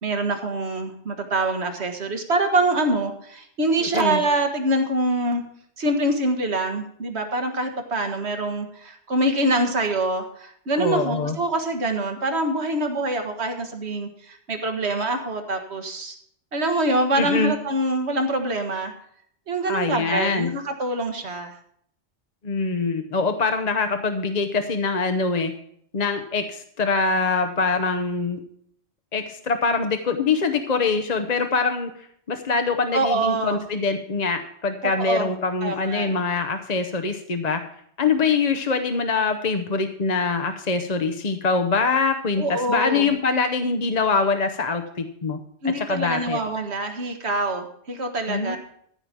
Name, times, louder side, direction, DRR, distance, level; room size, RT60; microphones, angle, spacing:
voice 1, 0.0-5.4 5.8-16.1 16.5-18.9 19.5-21.5 32.9-33.6 34.8-35.3 35.6-36.1 42.4-43.2 45.6-48.6, right 2 dB, 75° right, 5 dB, 1.7 m, -25 dB
voice 2, 3.8-4.2 10.8-11.4 17.2-17.6 19.7-20.5 22.4-25.5 25.9-28.4 29.1-37.6 38.0-45.4 45.9-46.4 48.3-48.6, left 4 dB, 40° left, 7 dB, 0.8 m, -24 dB
14.5 x 4.9 x 7.3 m, 0.66 s
omnidirectional pair, 1.1 m